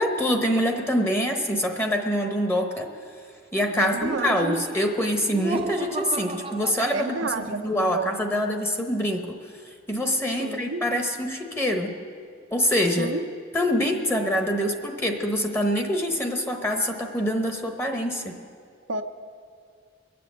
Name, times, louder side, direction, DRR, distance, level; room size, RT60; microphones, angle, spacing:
voice 1, 0.0-2.9 3.5-9.4 9.6-11.9 12.5-13.1 13.5-18.4, equal, 10° left, 4 dB, 1.0 m, -25 dB
voice 2, 3.7-4.6 6.9-8.2 10.4-10.8 13.0-13.3 18.9-19.0, right 3 dB, 70° right, 7 dB, 0.6 m, -30 dB
Laughter, 4.0-7.7, right 2 dB, 30° right, 0.7 m, -34 dB
22.0 x 7.8 x 8.0 m, 2.2 s
head